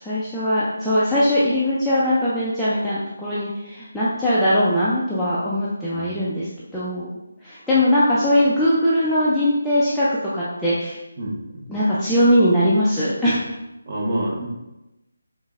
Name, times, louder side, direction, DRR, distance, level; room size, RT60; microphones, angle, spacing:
voice 1, 0.0-7.2 7.4-10.1 10.3-11.0 11.7-13.5, equal, ahead, -13 dB, 0.3 m, -20 dB
voice 2, 11.2-11.6 13.9-14.5, right 1 dB, 25° right, -3 dB, 0.8 m, -27 dB
5.5 x 3.1 x 2.4 m, 0.95 s
figure-of-eight pair, 175°, 0 cm